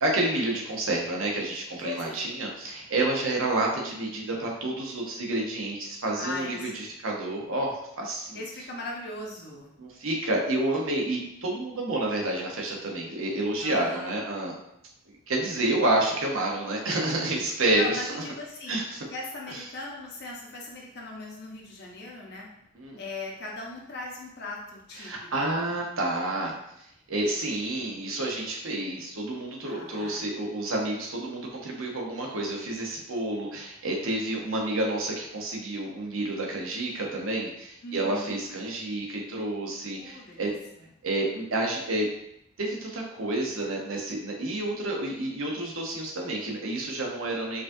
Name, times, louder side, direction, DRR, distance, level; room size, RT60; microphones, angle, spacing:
voice 1, 0.0-8.4 9.8-14.5 15.3-18.0 18.7-19.0 22.8-23.0 25.0-26.5 27.1-40.6 41.0-42.1 42.6-47.6, right 2 dB, 80° right, -1 dB, 0.9 m, -29 dB
voice 2, 1.8-2.2 6.2-6.8 8.3-9.7 13.6-14.2 17.7-18.8 19.1-22.5 23.0-25.1 29.7-30.3 37.8-38.4 40.0-40.9, left 2 dB, 50° left, -2 dB, 0.8 m, -39 dB
4.8 x 2.4 x 2.6 m, 0.80 s
head